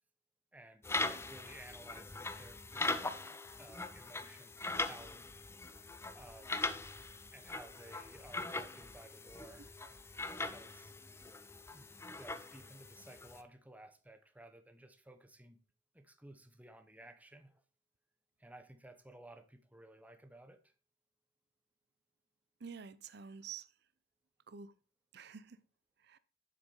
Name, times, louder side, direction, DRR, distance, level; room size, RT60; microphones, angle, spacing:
voice 1, 0.5-5.2 6.1-6.6 7.3-9.7 10.2-10.9 11.7-15.6 15.9-17.6 18.4-20.7, right 1 dB, 10° right, 0.9 m, -56 dB
sound 1, 0.8-13.4, left 3 dB, 15° left, 0.6 m, -41 dB
voice 2, 22.6-23.7 24.5-24.7 25.1-25.6 26.0-26.2, right 6 dB, 60° right, 0.7 m, -48 dB
7.2 x 6.7 x 5.4 m
head